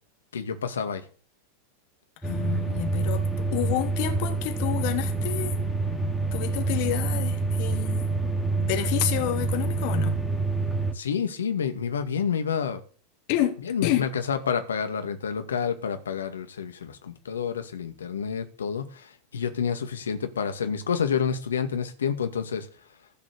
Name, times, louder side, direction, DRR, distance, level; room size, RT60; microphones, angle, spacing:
voice 1, 0.3-1.0 10.9-12.8 13.7-22.7, left 7 dB, 75° left, 2.0 m, -29 dB
voice 2, 2.2-5.6 6.3-10.2 13.3-14.1, left 13 dB, 55° left, 2.8 m, -29 dB
sound 1, 2.2-10.9, right 3 dB, ahead, 3.0 m, -27 dB
15.5 x 6.2 x 6.9 m
figure-of-eight pair, 90°, 0 cm